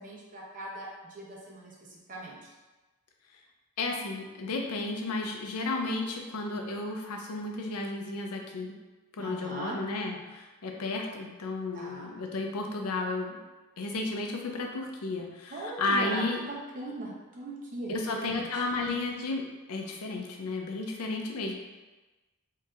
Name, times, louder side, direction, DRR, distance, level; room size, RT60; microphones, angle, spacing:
voice 1, 0.0-1.7 2.1-2.5 9.2-9.8 11.7-12.1 15.5-18.5, right 1 dB, 35° right, -4 dB, 0.7 m, -40 dB
voice 2, 3.8-8.8 9.2-13.4 13.8-16.4 17.9-21.5, left 2 dB, 90° left, 2 dB, 0.5 m, -33 dB
4.4 x 2.7 x 2.4 m, 1.2 s
head